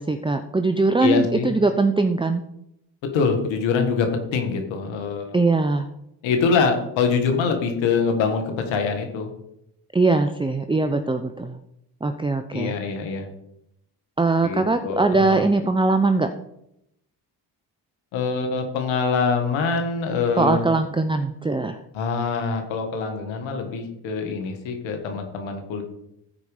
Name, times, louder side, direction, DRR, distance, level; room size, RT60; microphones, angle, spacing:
voice 1, 0.0-2.4 5.3-5.9 9.9-11.6 12.0-12.7 14.2-16.3 20.4-21.8, right 3 dB, 10° right, 8 dB, 0.7 m, -21 dB
voice 2, 1.0-1.5 3.1-5.4 6.2-9.3 12.5-13.3 14.4-15.5 18.1-20.7 21.9-25.8, left 5 dB, 90° left, 5 dB, 1.8 m, -24 dB
14.5 x 5.1 x 4.9 m, 0.80 s
supercardioid pair, 55°, 45 cm